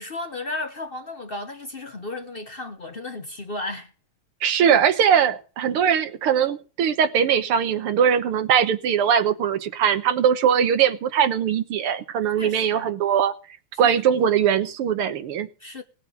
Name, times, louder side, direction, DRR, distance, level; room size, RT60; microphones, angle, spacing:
voice 1, 0.0-3.9 12.4-12.9 13.8-14.0 15.6-15.8, left 2 dB, 40° left, 0.8 m, -34 dB
voice 2, 4.4-13.3 13.8-15.5, right 8 dB, 85° right, 2.0 m, -21 dB
17.5 x 8.0 x 7.1 m
omnidirectional pair, 2.4 m